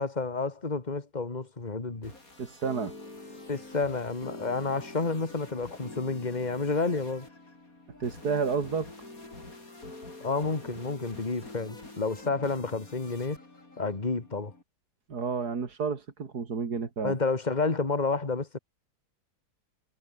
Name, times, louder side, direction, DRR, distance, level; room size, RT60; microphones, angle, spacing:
voice 1, 0.0-2.1 3.5-7.3 10.2-13.4 13.8-14.5 17.0-18.6, left 3 dB, 25° left, 2.4 m, -30 dB
sound 1, 1.8-14.6, left 2 dB, 60° left, 6.1 m, -46 dB
voice 2, 2.4-2.9 8.0-8.9 15.1-17.1, right 5 dB, 75° right, 2.9 m, -30 dB
omnidirectional pair, 1.7 m